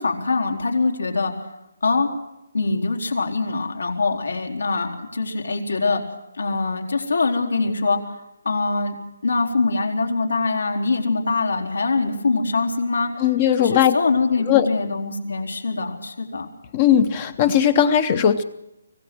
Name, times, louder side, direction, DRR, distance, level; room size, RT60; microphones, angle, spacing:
voice 1, 0.0-1.3 1.8-2.1 2.5-6.0 6.4-8.0 8.4-8.9 9.2-13.1 13.6-16.5, left 3 dB, 85° left, 3 dB, 4.2 m, -23 dB
voice 2, 13.2-13.9 14.5-14.7 16.7-18.4, left 9 dB, 20° left, 13 dB, 0.7 m, -18 dB
25.0 x 17.5 x 6.1 m, 0.86 s
hypercardioid pair, 175°, 0 cm